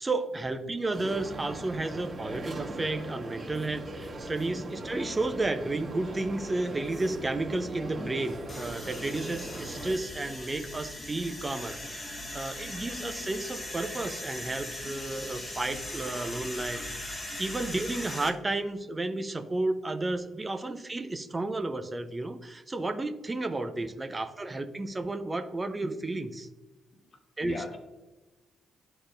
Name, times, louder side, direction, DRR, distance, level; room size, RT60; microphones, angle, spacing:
voice 1, 0.0-26.5 27.4-27.6, right 2 dB, 25° right, 8 dB, 0.7 m, -32 dB
sound 1, 0.9-9.9, right 2 dB, 45° right, 2.0 m, -40 dB
sound 2, 8.5-18.3, left 1 dB, 25° left, 1.2 m, -39 dB
voice 2, 26.9-27.8, left 4 dB, 50° left, 5 dB, 1.1 m, -42 dB
11.5 x 4.0 x 2.5 m, 1.2 s
hypercardioid pair, 40°, 0 cm